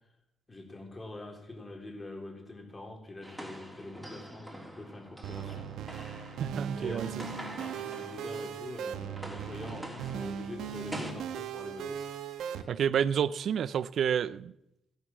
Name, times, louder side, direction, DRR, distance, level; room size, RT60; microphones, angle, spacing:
voice 1, 0.5-5.8 6.7-12.0, left 2 dB, 25° left, 4.1 m, -45 dB
sound 1, 3.2-8.7 9.0-11.1, equal, 5° right, 3.4 m, -45 dB
sound 2, 5.2-12.6, right 8 dB, 80° right, 1.4 m, -39 dB
voice 2, 6.4-7.2 12.7-14.5, right 8 dB, 65° right, 0.6 m, -29 dB
16.0 x 9.6 x 7.4 m
cardioid pair, 90°, 0 cm